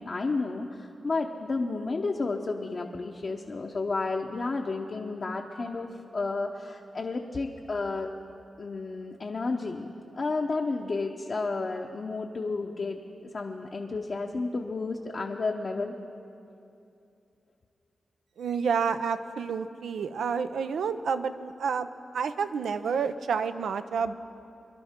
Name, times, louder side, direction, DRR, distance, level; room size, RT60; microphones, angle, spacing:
voice 1, 0.0-8.1 8.6-9.9 10.2-15.9, left 3 dB, 55° left, 0 dB, 0.8 m, -32 dB
voice 2, 18.4-21.9 22.1-24.1, right 6 dB, 85° right, 10 dB, 0.5 m, -29 dB
23.5 x 11.5 x 3.7 m, 2.7 s
cardioid pair, 50°, 0 cm